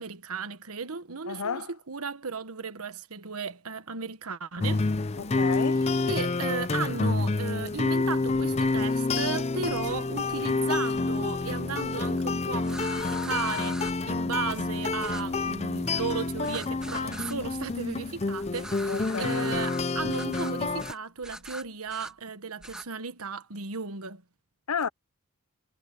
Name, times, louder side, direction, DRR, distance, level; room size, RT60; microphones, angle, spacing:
voice 1, 0.0-1.6 1.9-4.9 6.1-24.2, right 5 dB, 85° right, 1.4 m, -35 dB
voice 2, 1.3-1.7 5.2-5.9 18.9-19.6 24.7-24.9, left 6 dB, 85° left, 0.7 m, -32 dB
sound 1, 4.6-20.9, left 3 dB, 30° left, 0.6 m, -28 dB
sound 2, 12.6-13.9 15.0-15.2 16.4-17.4 18.5-19.8 20.1-20.5 20.8-21.0 21.2-22.1 22.6-22.9, right 1 dB, 5° right, 2.1 m, -41 dB
head